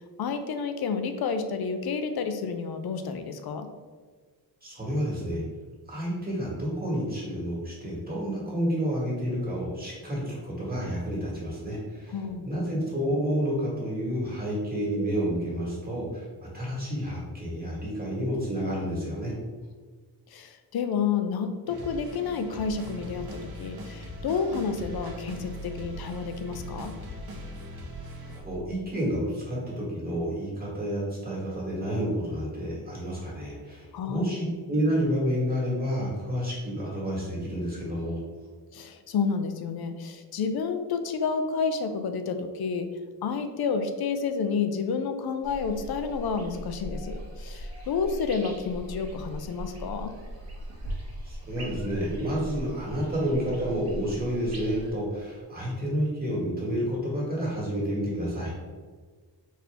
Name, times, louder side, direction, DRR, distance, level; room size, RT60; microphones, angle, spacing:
voice 1, 0.2-3.7 12.1-12.5 20.3-26.9 33.9-34.3 38.7-42.9 43.2-50.1, left 5 dB, 65° left, 8 dB, 0.5 m, -30 dB
voice 2, 4.6-5.4 5.9-12.2 12.4-19.3 28.3-38.2 51.2-58.6, equal, 20° right, -5 dB, 1.5 m, -30 dB
sound 1, 21.7-28.4, right 1 dB, 60° right, 0.8 m, -40 dB
sound 2, 45.4-54.9, right 1 dB, 40° right, 1.0 m, -39 dB
4.2 x 2.7 x 3.4 m, 1.5 s
wide cardioid pair, 115°, 41 cm